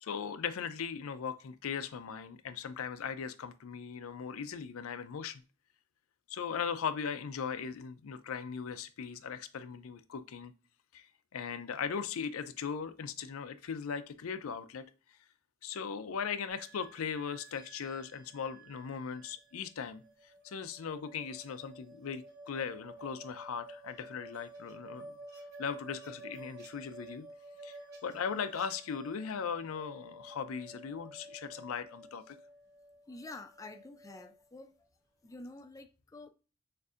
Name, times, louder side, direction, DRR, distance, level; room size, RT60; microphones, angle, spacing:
voice 1, 0.0-5.4 6.3-10.5 10.9-11.1 11.3-14.9 15.6-20.0 20.4-25.2 25.6-27.3 27.6-32.4, left 6 dB, 80° left, 0.4 m, -38 dB
sound 1, 16.5-34.4, right 1 dB, 50° right, 2.3 m, -52 dB
voice 2, 33.1-34.7 35.2-36.3, left 2 dB, 15° left, 0.4 m, -48 dB
6.5 x 2.6 x 2.4 m
head